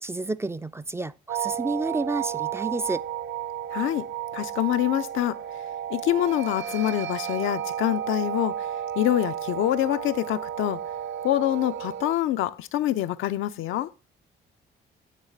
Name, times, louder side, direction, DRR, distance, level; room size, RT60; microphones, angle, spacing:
voice 1, 0.0-3.0, right 2 dB, 15° right, 0.4 m, -30 dB
sound 1, 1.3-12.1, right 10 dB, 65° right, 0.7 m, -32 dB
voice 2, 3.7-4.0 4.3-5.4 5.9-8.7 9.0-10.8 11.2-13.9, left 13 dB, 85° left, 0.6 m, -25 dB
9.7 x 3.2 x 6.5 m
cardioid pair, 90°, 20 cm